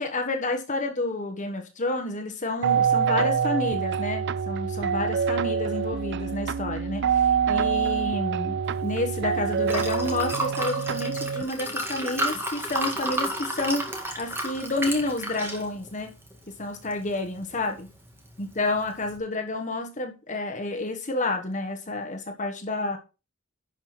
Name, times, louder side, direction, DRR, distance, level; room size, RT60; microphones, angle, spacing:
voice 1, 0.0-16.1 16.5-17.9 18.4-23.0, left 2 dB, 40° left, 1.3 m, -30 dB
sound 1, 2.6-11.4, right 7 dB, 60° right, 0.4 m, -26 dB
Liquid, 8.6-19.2, right 1 dB, 10° right, 2.0 m, -34 dB
11.0 x 5.7 x 4.3 m
head